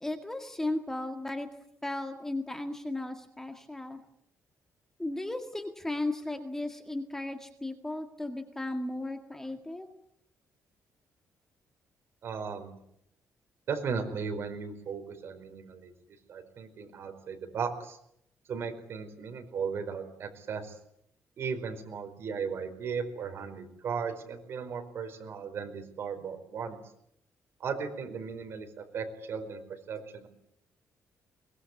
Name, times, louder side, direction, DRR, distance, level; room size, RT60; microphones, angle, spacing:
voice 1, 0.0-1.5 1.8-4.0 5.0-9.9, left 2 dB, 10° left, 5 dB, 1.9 m, -35 dB
voice 2, 12.2-12.7 13.7-15.9 16.3-18.0 18.5-20.8 21.4-26.8 27.6-30.3, right 6 dB, 50° right, 6 dB, 4.7 m, -36 dB
23.0 x 21.0 x 9.6 m, 0.74 s
cardioid pair, 170°, 5 cm